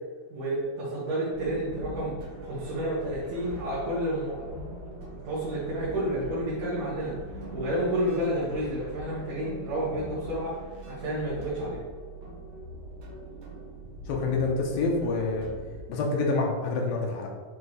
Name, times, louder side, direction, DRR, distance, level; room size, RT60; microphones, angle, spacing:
voice 1, 0.3-2.1 2.4-7.1 7.5-10.5 10.9-11.8, right 1 dB, 85° right, -10 dB, 3.9 m, -30 dB
sound 1, 1.3-15.8, right 2 dB, 70° right, 1.1 m, -42 dB
voice 2, 14.1-15.5 15.9-17.3, left 3 dB, 75° left, 0 dB, 2.6 m, -27 dB
9.6 x 4.7 x 3.3 m, 1.4 s
omnidirectional pair, 4.3 m